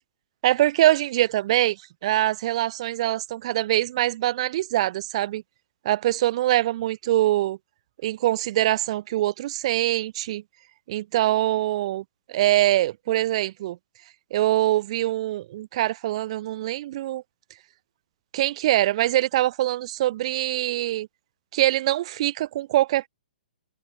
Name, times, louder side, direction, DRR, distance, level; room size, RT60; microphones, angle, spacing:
voice 1, 0.4-5.4 5.8-7.6 8.0-10.4 10.9-13.8 14.3-17.2 18.3-21.1 21.5-23.1, right 14 dB, 40° right, 1.9 m, -23 dB
figure-of-eight pair, 120°, 5 cm